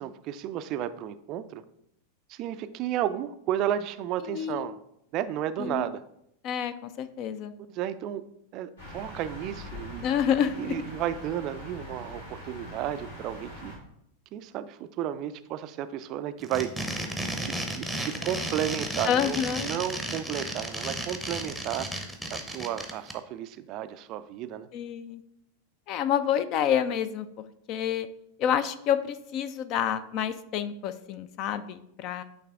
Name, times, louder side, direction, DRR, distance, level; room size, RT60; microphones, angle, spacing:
voice 1, 0.0-1.6 2.3-4.8 5.1-6.0 7.7-8.2 8.5-10.1 10.6-13.7 14.3-16.8 17.4-21.9 22.3-24.7, right 11 dB, 40° right, 12 dB, 0.3 m, -33 dB
voice 2, 4.2-4.7 5.6-5.8 6.4-7.5 10.0-10.8 19.0-19.7 24.7-25.2 25.9-28.1 28.4-32.2, left 9 dB, 40° left, 13 dB, 0.4 m, -28 dB
sound 1, 8.8-13.8, left 1 dB, 70° left, 2.2 m, -42 dB
sound 2, 16.4-23.1, right 1 dB, 5° left, 0.8 m, -33 dB
8.5 x 3.3 x 3.6 m, 0.76 s
figure-of-eight pair, 90°, 0 cm